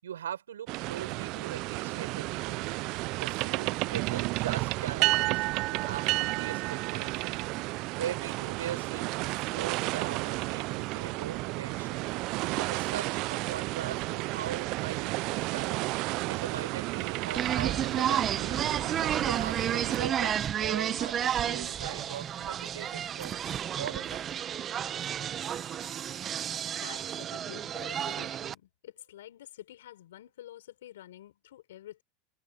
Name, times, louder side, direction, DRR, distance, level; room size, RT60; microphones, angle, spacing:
voice 1, 0.0-2.8 3.2-7.4 8.0-12.1 12.5-15.8 16.3-18.7 19.0-24.2, right 9 dB, 90° right, 6.0 m, -40 dB
sound 1, 0.7-20.1, right 22 dB, 55° right, 0.3 m, -32 dB
sound 2, 17.4-28.5, right 9 dB, 35° right, 1.0 m, -31 dB
voice 2, 26.6-32.0, left 13 dB, 80° left, 6.2 m, -48 dB
hypercardioid pair, 100°, 0 cm